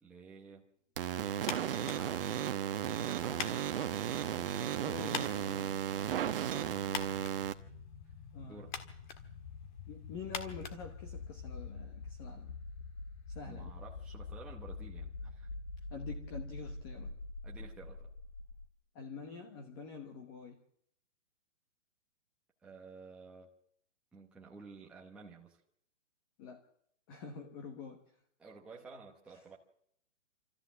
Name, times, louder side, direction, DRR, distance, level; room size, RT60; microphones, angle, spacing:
voice 1, 0.0-0.6 1.7-3.7 8.4-9.0 13.4-15.5 17.4-18.1 22.6-23.5 24.1-25.6 28.4-29.6, right 4 dB, 5° right, 0.9 m, -53 dB
sound 1, 1.0-7.5, right 10 dB, 45° right, 1.1 m, -35 dB
sound 2, 1.4-11.6, left 6 dB, 40° left, 1.7 m, -46 dB
voice 2, 4.8-5.8 8.3-8.6 9.9-12.6 13.3-13.7 15.9-17.1 18.9-20.6 26.4-26.7 27.1-28.1, left 5 dB, 20° left, 1.1 m, -46 dB
sound 3, 5.2-18.7, left 3 dB, 60° left, 2.0 m, -47 dB
26.0 x 14.0 x 7.5 m
hypercardioid pair, 165°, 37 cm